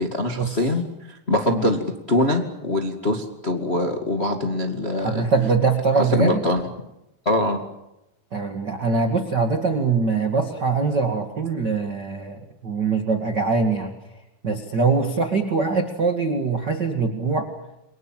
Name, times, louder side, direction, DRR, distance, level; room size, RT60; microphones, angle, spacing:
voice 1, 0.0-5.2 5.9-6.6 7.2-7.6, left 1 dB, 65° left, 4 dB, 0.6 m, -23 dB
voice 2, 5.0-6.4 8.3-13.9 14.4-17.5, right 4 dB, 45° right, 5 dB, 1.3 m, -23 dB
29.5 x 23.5 x 7.6 m, 0.90 s
omnidirectional pair, 5.3 m